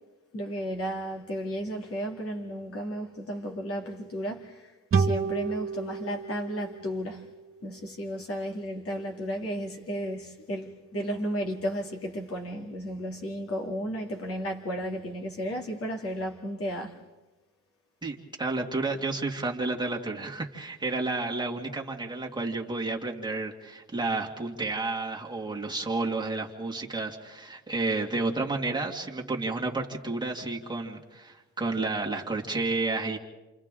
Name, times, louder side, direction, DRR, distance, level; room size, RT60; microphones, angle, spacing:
voice 1, 0.3-7.3 7.6-17.0, equal, 50° left, 2.8 m, -33 dB
sound 1, 4.9-8.3, right 5 dB, 45° right, 2.0 m, -31 dB
voice 2, 18.0-33.2, right 3 dB, 15° right, 2.3 m, -31 dB
28.0 x 28.0 x 3.8 m
cardioid pair, 90°, 30 cm